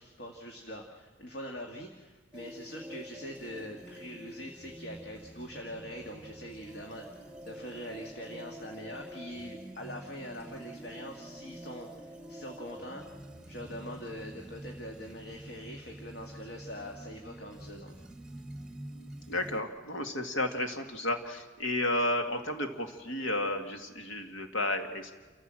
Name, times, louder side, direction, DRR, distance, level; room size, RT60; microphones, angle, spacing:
voice 1, 0.0-13.0 13.5-18.0, equal, 55° left, 2 dB, 1.9 m, -43 dB
sound 1, 2.3-19.6, right 1 dB, 5° right, 1.1 m, -47 dB
voice 2, 19.3-25.1, left 1 dB, 90° left, 5 dB, 2.1 m, -32 dB
28.0 x 14.5 x 7.7 m, 1.3 s
head